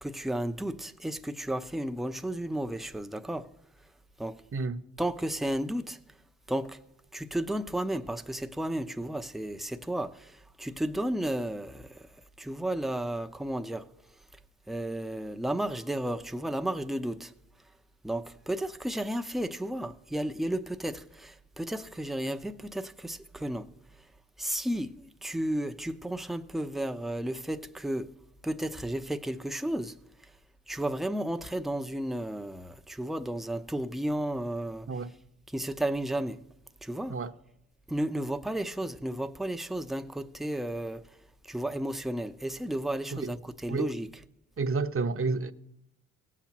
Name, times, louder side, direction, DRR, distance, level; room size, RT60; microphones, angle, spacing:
voice 1, 0.0-3.5 4.2-4.4 5.0-6.0 6.5-6.8 7.1-12.1 12.4-13.9 14.7-17.3 18.0-23.7 24.4-28.1 28.4-30.0 30.2-30.3 30.7-34.9 35.5-36.4 36.8-37.2 37.9-41.2 41.4-44.1, right 1 dB, ahead, 0.8 m, -33 dB
voice 2, 44.6-45.5, right 4 dB, 30° right, 1.0 m, -30 dB
19.0 x 7.4 x 3.0 m
hypercardioid pair, 40°, 45 cm